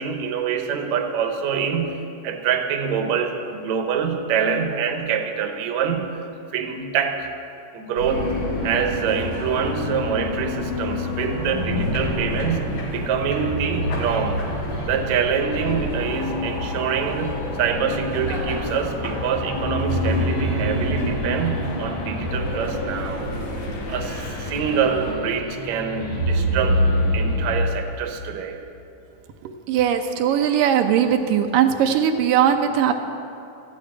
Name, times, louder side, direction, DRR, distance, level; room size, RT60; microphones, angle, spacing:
voice 1, 0.0-2.0 2.2-6.1 6.5-7.3 7.7-14.4 14.8-23.3 23.9-26.8 27.1-28.6, right 6 dB, 65° right, 4 dB, 2.2 m, -25 dB
sound 1, 8.0-27.7, equal, 55° left, 2.7 m, -27 dB
sound 2, 8.1-25.1, left 2 dB, 90° left, 4.6 m, -33 dB
voice 2, 29.4-32.9, right 9 dB, 85° right, 5 dB, 2.4 m, -19 dB
14.0 x 8.7 x 9.8 m, 3.0 s
omnidirectional pair, 3.8 m